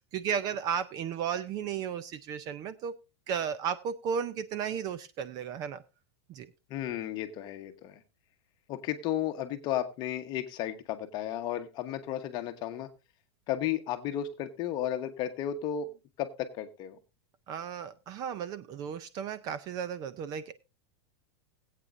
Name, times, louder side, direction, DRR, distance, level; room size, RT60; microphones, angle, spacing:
voice 1, 0.1-2.9 3.3-5.8 6.3-6.5 17.5-20.7, right 7 dB, 30° right, 15 dB, 0.5 m, -34 dB
voice 2, 6.7-8.0 8.7-12.9 13.5-15.9 16.2-17.0, left 11 dB, 30° left, 7 dB, 1.1 m, -33 dB
20.0 x 8.5 x 2.6 m, 0.28 s
supercardioid pair, 160°, 14 cm